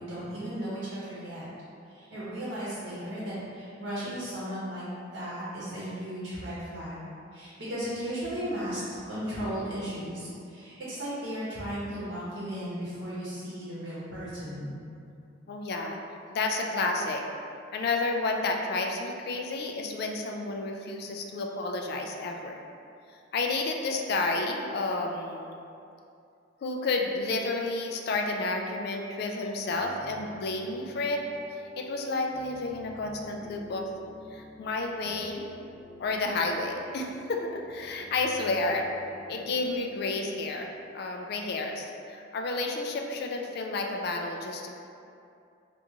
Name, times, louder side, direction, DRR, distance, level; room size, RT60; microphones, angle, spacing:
voice 1, 0.0-1.4 1.9-4.9 5.1-14.7, equal, 60° right, -10 dB, 0.9 m, -35 dB
voice 2, 15.5-16.0 16.3-17.2 17.7-22.6 23.3-25.5 26.6-31.2 31.5-33.9 34.3-35.5 36.0-38.9 39.3-44.7, left 3 dB, 55° left, 2 dB, 0.3 m, -31 dB
sound 1, 29.7-41.4, left 1 dB, 5° right, 0.7 m, -50 dB
2.9 x 2.5 x 3.5 m, 2.6 s
head